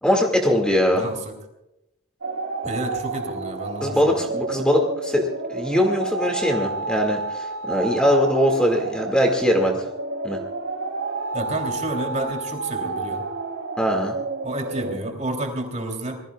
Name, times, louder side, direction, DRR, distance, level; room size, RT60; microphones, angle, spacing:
voice 1, 0.0-1.1 3.8-9.9 10.2-10.4 13.8-14.1, equal, 5° left, 1 dB, 2.1 m, -21 dB
voice 2, 0.9-1.4 2.6-4.3 11.3-13.3 14.4-16.2, right 1 dB, 35° right, 4 dB, 3.3 m, -30 dB
sound 1, 2.2-15.0, right 3 dB, 85° right, 3.0 m, -30 dB
27.0 x 20.5 x 2.4 m, 0.89 s
head